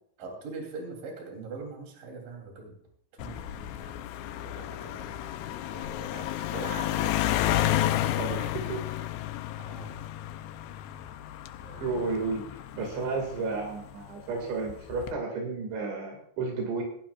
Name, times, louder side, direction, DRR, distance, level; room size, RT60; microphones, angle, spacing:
voice 1, 0.2-2.8 3.1-7.7 8.2-8.5 9.6-10.0 11.6-12.0, right 3 dB, 50° right, 1 dB, 4.6 m, -43 dB
sound 1, 3.2-13.9 14.7-15.1, left 13 dB, 80° left, 2.6 m, -31 dB
voice 2, 8.2-8.8 11.8-12.4 12.8-16.8, right 4 dB, 80° right, 1 dB, 4.5 m, -32 dB
17.5 x 14.5 x 2.5 m, 0.67 s
omnidirectional pair, 5.2 m